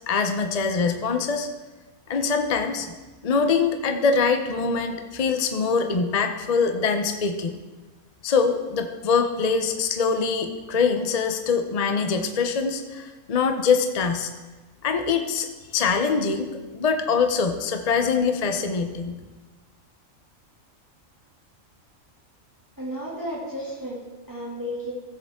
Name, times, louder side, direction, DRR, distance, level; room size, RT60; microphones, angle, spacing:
voice 1, 0.1-1.5 2.1-2.9 3.2-7.6 8.2-14.3 14.8-19.2, left 5 dB, 40° left, 6 dB, 0.6 m, -23 dB
voice 2, 22.8-24.9, equal, 15° right, -6 dB, 2.2 m, -33 dB
14.5 x 7.7 x 3.6 m, 1.2 s
omnidirectional pair, 1.4 m